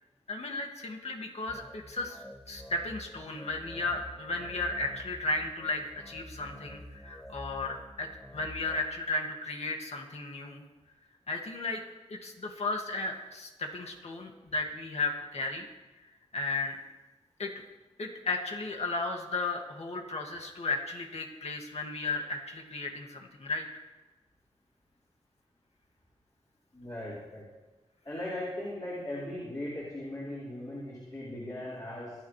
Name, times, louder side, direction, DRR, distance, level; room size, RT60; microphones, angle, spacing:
voice 1, 0.3-10.6 11.3-11.8 12.1-15.7 16.3-16.8 17.4-17.5 18.0-23.7, left 3 dB, 65° left, 1 dB, 2.2 m, -34 dB
sound 1, 1.5-8.8, equal, 10° left, 1.2 m, -48 dB
voice 2, 26.7-27.4 28.0-32.1, left 1 dB, 35° left, -8 dB, 4.8 m, -38 dB
26.0 x 9.6 x 3.3 m, 1.1 s
wide cardioid pair, 70°, 12 cm